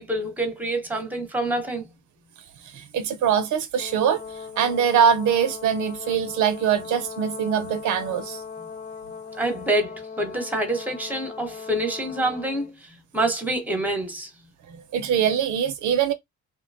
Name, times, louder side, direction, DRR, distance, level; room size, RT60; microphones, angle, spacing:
voice 1, 0.0-1.9 8.6-8.7 9.4-14.3, right 1 dB, 5° right, 0.9 m, -27 dB
voice 2, 2.7-4.2 4.6-8.4 14.7-16.1, right 8 dB, 75° right, 0.6 m, -23 dB
Brass instrument, 3.8-12.7, left 6 dB, 80° left, 1.2 m, -39 dB
2.7 x 2.2 x 2.6 m
cardioid pair, 90°, 30 cm